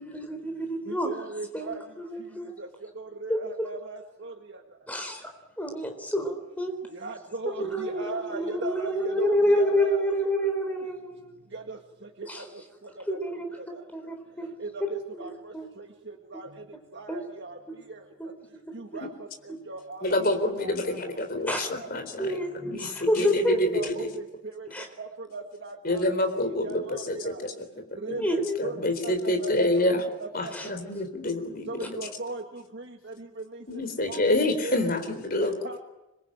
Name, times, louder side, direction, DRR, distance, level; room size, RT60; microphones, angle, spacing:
voice 1, 0.0-1.1 1.5-2.6 3.3-3.7 4.9-5.3 5.6-6.7 7.5-11.3 12.3-12.5 13.1-13.5 13.9-14.5 14.8-14.9 15.2-15.3 15.5-15.7 17.1-17.2 18.2-18.3 19.5-19.6 21.5-21.7 22.2-23.9 24.7-24.9 28.2-28.6 30.5-30.7, equal, 5° left, 4 dB, 4.0 m, -28 dB
voice 2, 0.9-1.8 2.6-2.7 3.0-4.3 6.9-10.2 11.5-11.8 12.2-12.6 13.1-13.2 13.5-13.7 14.6-16.5 16.9-17.6 17.9-18.0 18.7-20.0 20.6-21.9 23.2-24.1 24.4-24.7 25.0-26.1 26.6-27.4 28.0-28.8 29.0-29.9 30.2-30.8 31.7-33.6 34.1-34.2 34.6-34.9 35.4-35.8, right 3 dB, 55° right, 3 dB, 1.9 m, -38 dB
voice 3, 20.0-24.1 25.8-27.5 28.1-28.3 28.6-30.1 30.3-32.0 33.7-35.5, left 1 dB, 45° left, 6 dB, 4.0 m, -27 dB
26.5 x 22.0 x 8.9 m, 0.98 s
head